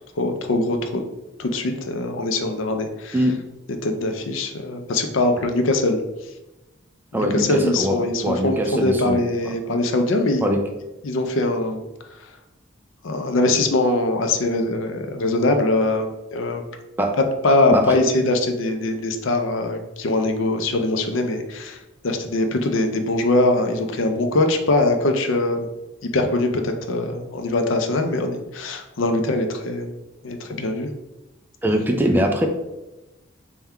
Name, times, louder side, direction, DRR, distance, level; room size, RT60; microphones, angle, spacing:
voice 1, 0.2-1.0 1.4-3.2 3.8-6.0 7.2-10.4 11.0-11.8 13.0-16.6 17.2-25.7 26.0-29.9 30.2-30.9, left 2 dB, 80° left, 6 dB, 0.5 m, -22 dB
voice 2, 7.1-9.2 10.4-10.6 17.0-17.1 17.7-18.0 31.6-32.5, equal, 10° right, 3 dB, 0.3 m, -22 dB
3.6 x 2.3 x 4.2 m, 1.0 s
head